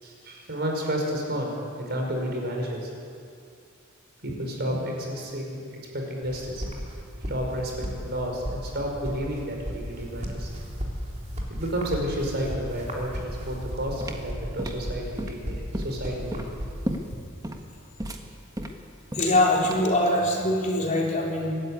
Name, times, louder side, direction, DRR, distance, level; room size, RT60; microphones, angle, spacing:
voice 1, 0.0-1.5 1.9-2.9 4.2-5.6 5.9-6.7 7.3-10.5 11.5-16.6, equal, 50° right, 0 dB, 5.2 m, -31 dB
sound 1, 6.2-17.1, equal, 35° right, 3.6 m, -36 dB
sound 2, 14.0-20.1, equal, 15° right, 1.5 m, -35 dB
voice 2, 19.1-21.5, left 1 dB, 35° left, -2 dB, 4.0 m, -23 dB
24.0 x 14.0 x 9.8 m, 2.4 s
head